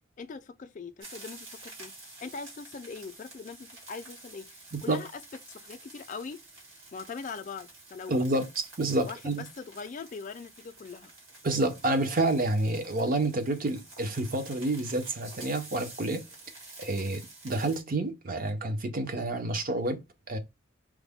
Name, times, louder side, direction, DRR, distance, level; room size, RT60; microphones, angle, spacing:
voice 1, 0.2-1.9 2.2-5.2 5.5-6.4 6.9-8.2 9.0-11.1, left 5 dB, 40° left, 0.4 m, -41 dB
sound 1, 1.0-17.8, right 2 dB, 85° right, 2.0 m, -49 dB
voice 2, 4.7-5.1 8.1-9.5 11.4-16.3 16.8-20.0 20.3-20.4, right 2 dB, 45° right, 0.7 m, -29 dB
4.7 x 2.1 x 3.4 m
head